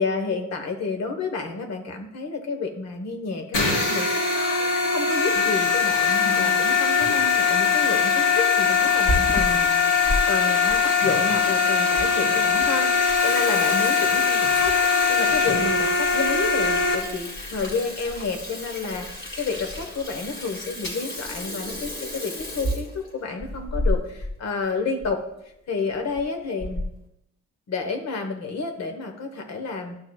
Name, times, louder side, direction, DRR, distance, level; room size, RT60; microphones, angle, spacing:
voice 1, 0.0-4.5 4.8-14.7 15.1-25.2 25.7-26.8 27.7-30.0, left 4 dB, 60° left, 4 dB, 1.3 m, -30 dB
sound 1, 3.5-16.9, left 5 dB, 80° left, 3.1 m, -21 dB
Water tap faucet / Sink (filling or washing), 8.8-10.2 10.7-10.8 11.5-11.6 12.0-12.1 12.4-12.6 12.9-24.3 24.6-24.7 25.0-25.1 25.9-26.2 26.6-27.0, left 1 dB, 40° left, 2.2 m, -32 dB
11.5 x 6.3 x 2.4 m, 0.83 s
cardioid pair, 90°, 30 cm